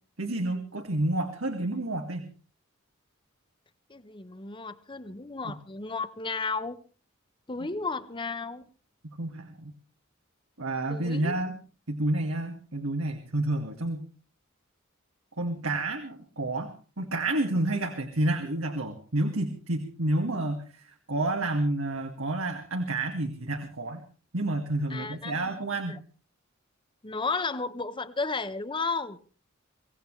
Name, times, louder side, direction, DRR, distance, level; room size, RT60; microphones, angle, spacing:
voice 1, 0.2-2.2 5.4-5.5 9.2-9.7 10.6-11.6 11.9-14.1 15.4-20.6 21.1-24.0 24.3-26.0, right 2 dB, 85° right, 4 dB, 2.2 m, -29 dB
voice 2, 3.9-6.8 7.5-8.6 10.9-11.4 24.9-25.5 25.9-26.0 27.0-29.2, left 4 dB, 25° left, 12 dB, 1.1 m, -33 dB
24.5 x 17.0 x 3.3 m, 0.37 s
head